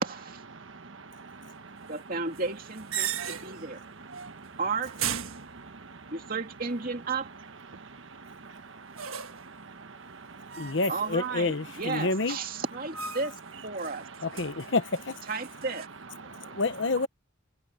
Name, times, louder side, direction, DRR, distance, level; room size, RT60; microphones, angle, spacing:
voice 1, 0.0-0.4 1.9-3.8 4.6-4.9 6.1-7.3 10.9-13.4 13.6-14.0 15.3-15.9, right 4 dB, 45° right, 2.6 m, -33 dB
voice 2, 0.5-1.9 3.1-3.2 4.1-4.6 5.3-6.1 7.7-10.8 16.3-16.6, right 4 dB, 70° right, 1.2 m, -47 dB
sound 1, 2.4-3.7 4.1-4.5 4.8-6.1 9.0-9.6 10.5-11.3 11.7-12.3 12.9-13.5 13.8-15.9, right 9 dB, 90° right, 1.5 m, -37 dB
voice 3, 10.6-12.4 14.2-15.2 16.4-17.1, left 3 dB, 60° left, 1.0 m, -28 dB
head